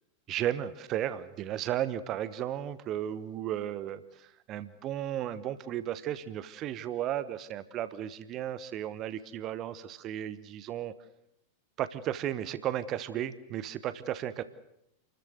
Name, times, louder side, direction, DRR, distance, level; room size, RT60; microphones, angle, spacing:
voice 1, 0.3-10.9 11.8-14.4, right 11 dB, 35° right, 15 dB, 1.1 m, -34 dB
29.0 x 14.0 x 7.9 m, 0.81 s
figure-of-eight pair, 90°, 0 cm